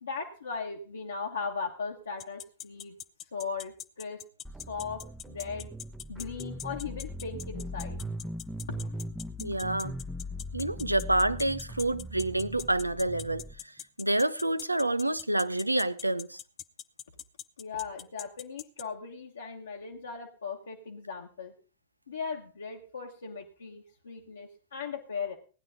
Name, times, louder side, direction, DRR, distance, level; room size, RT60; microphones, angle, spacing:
voice 1, 0.0-2.9 3.3-4.2 4.7-5.7 6.1-8.0 8.7-8.9 17.6-21.5 22.1-25.4, left 5 dB, 75° left, 1.4 m, -38 dB
sound 1, 2.2-18.8, left 11 dB, 30° left, 0.6 m, -41 dB
sound 2, 4.4-13.5, equal, 5° right, 0.8 m, -40 dB
voice 2, 9.4-9.9 10.5-13.4 14.0-16.4, right 1 dB, 85° right, 0.6 m, -28 dB
17.5 x 10.5 x 3.8 m
figure-of-eight pair, 90°, 0 cm